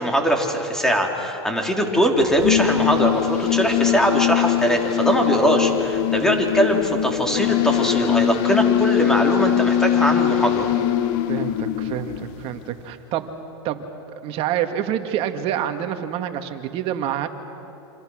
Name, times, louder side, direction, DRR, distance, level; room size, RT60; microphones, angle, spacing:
voice 1, 0.0-10.7, equal, 5° left, 2 dB, 3.3 m, -21 dB
sound 1, 2.2-12.7, left 12 dB, 55° left, 1.3 m, -22 dB
voice 2, 11.3-13.3 13.6-13.9 14.2-17.3, right 10 dB, 40° right, 7 dB, 1.9 m, -27 dB
27.5 x 26.5 x 6.4 m, 2.9 s
supercardioid pair, 130°, 14 cm